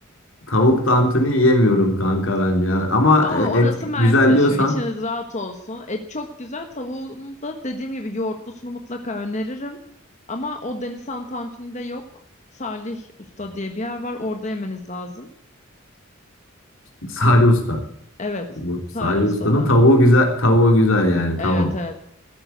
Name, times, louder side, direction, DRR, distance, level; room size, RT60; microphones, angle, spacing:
voice 1, 0.5-4.8 17.1-17.8 18.6-21.7, left 1 dB, 80° left, 2 dB, 3.2 m, -17 dB
voice 2, 3.2-9.8 10.3-12.0 12.5-13.1 13.4-15.3 18.2-18.5 18.9-19.7 21.4-21.9, left 2 dB, 35° left, 5 dB, 1.2 m, -30 dB
14.5 x 8.8 x 9.2 m, 0.67 s
head